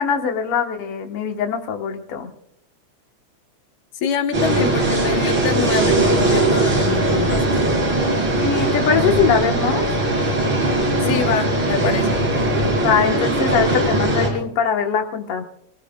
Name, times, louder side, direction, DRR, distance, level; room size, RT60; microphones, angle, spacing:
voice 1, 0.0-2.3 8.4-9.9 12.7-15.4, left 7 dB, 55° left, 4 dB, 2.2 m, -22 dB
voice 2, 4.0-7.7 11.0-12.2, left 6 dB, 85° left, 6 dB, 2.5 m, -25 dB
sound 1, 4.3-14.3, right 2 dB, 40° right, 5.7 m, -19 dB
26.0 x 18.5 x 2.4 m, 0.74 s
omnidirectional pair, 3.3 m